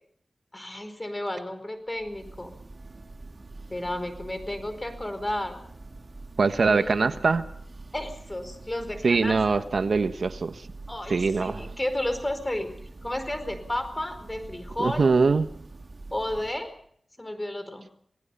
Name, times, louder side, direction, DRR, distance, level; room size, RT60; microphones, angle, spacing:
voice 1, 0.5-2.6 3.7-5.6 6.6-7.2 7.9-9.4 10.9-12.7 13.0-15.1 16.1-16.7 17.2-17.9, left 1 dB, 20° left, 9 dB, 4.5 m, -32 dB
Church bell, 1.9-16.8, right 2 dB, 50° right, 2.8 m, -44 dB
voice 2, 6.4-7.4 9.0-10.7 11.1-11.6 14.8-15.5, right 4 dB, 75° right, 9 dB, 1.3 m, -23 dB
27.0 x 18.5 x 5.6 m, 0.64 s
wide cardioid pair, 65°, 0 cm